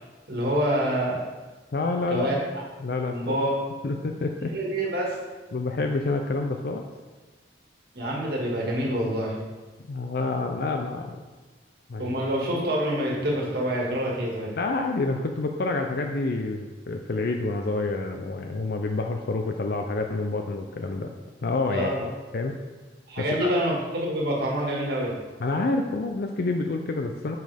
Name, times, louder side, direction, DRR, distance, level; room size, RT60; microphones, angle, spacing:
voice 1, 0.3-1.2 2.1-2.4 3.1-3.5 4.5-5.1 7.9-9.4 12.0-14.5 21.7-22.0 23.1-25.1, equal, 60° right, -3 dB, 1.9 m, -26 dB
voice 2, 1.7-2.3 2.8-3.3 3.8-4.6 5.5-6.8 9.9-11.2 11.9-12.2 14.6-21.1 21.4-21.9 22.3-22.5 23.2-23.5 25.4-27.4, left 3 dB, 55° left, 4 dB, 0.5 m, -28 dB
9.3 x 5.2 x 3.5 m, 1.3 s
head